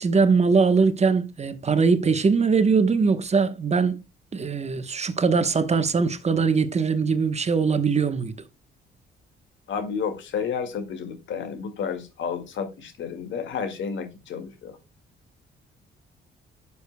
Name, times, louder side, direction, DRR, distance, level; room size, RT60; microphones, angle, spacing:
voice 1, 0.0-4.0 4.3-8.3, right 5 dB, 35° right, 1.0 m, -21 dB
voice 2, 9.7-14.8, left 6 dB, 70° left, 2.1 m, -31 dB
11.0 x 7.0 x 2.2 m
cardioid pair, 90°, 20 cm